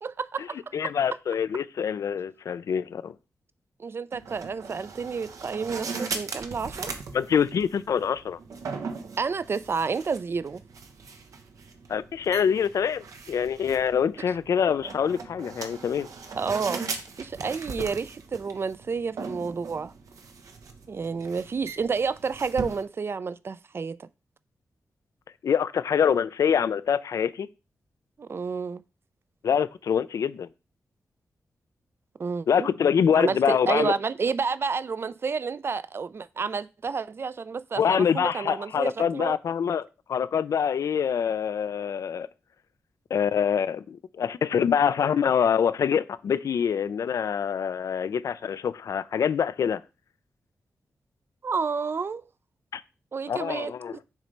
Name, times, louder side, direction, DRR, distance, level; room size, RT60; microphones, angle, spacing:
voice 1, 0.0-0.9 3.8-6.9 9.2-10.6 16.4-16.8 17.2-19.9 20.9-24.1 28.2-28.8 32.2-32.7 33.1-39.4 51.4-52.2 53.1-54.0, right 5 dB, 45° right, 0.4 m, -30 dB
voice 2, 0.7-3.1 7.1-8.4 11.9-16.1 25.4-27.5 29.4-30.5 32.5-33.9 37.8-42.3 43.1-49.8 52.7-52.8 53.3-54.0, left 7 dB, 75° left, 0.4 m, -25 dB
sound 1, 4.1-22.8, right 4 dB, 85° right, 1.0 m, -39 dB
7.2 x 3.2 x 5.2 m
cardioid pair, 80°, 6 cm